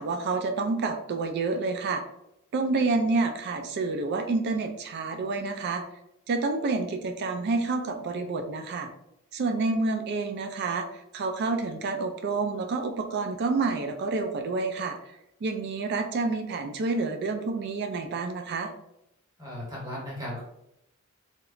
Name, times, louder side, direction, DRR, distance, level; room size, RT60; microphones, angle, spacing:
voice 1, 0.0-2.0 2.5-5.8 6.3-8.9 9.3-10.9 11.1-15.0 15.4-18.7, right 3 dB, 50° right, 5 dB, 0.3 m, -28 dB
voice 2, 19.4-20.4, left 1 dB, 15° right, -5 dB, 1.0 m, -36 dB
2.8 x 2.2 x 2.4 m, 0.82 s
head